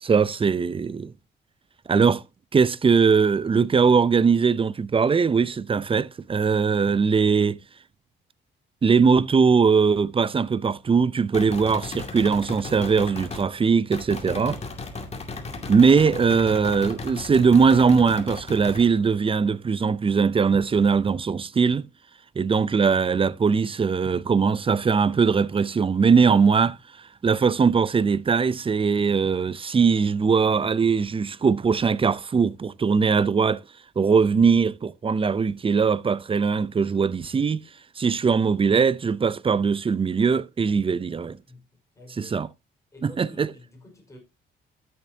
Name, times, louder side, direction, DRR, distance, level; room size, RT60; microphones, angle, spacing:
voice 1, 0.0-1.1 1.9-2.2 2.5-7.6 8.8-14.6 15.7-21.9 22.4-26.8 27.2-33.6 34.0-37.6 38.0-41.4 42.2-42.5 43.0-43.5, right 5 dB, 25° right, 0.6 m, -20 dB
sound 1, 11.3-13.5 13.9-18.9, left 3 dB, 30° left, 2.4 m, -36 dB
voice 2, 41.9-42.4 42.9-44.2, left 1 dB, 15° left, 5.1 m, -48 dB
12.5 x 7.3 x 2.8 m
cardioid pair, 90°, 20 cm